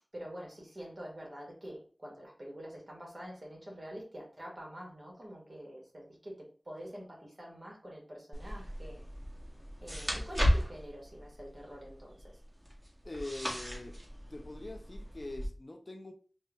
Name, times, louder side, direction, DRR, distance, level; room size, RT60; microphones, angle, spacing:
voice 1, 0.1-9.0 9.8-12.4, equal, 50° right, 2.0 m, -46 dB
sound 1, 8.3-15.5, equal, 15° right, 1.6 m, -36 dB
voice 2, 13.0-14.0 14.3-16.1, left 2 dB, 50° left, 0.6 m, -43 dB
4.2 x 2.6 x 3.4 m
wide cardioid pair, 40°, 0 cm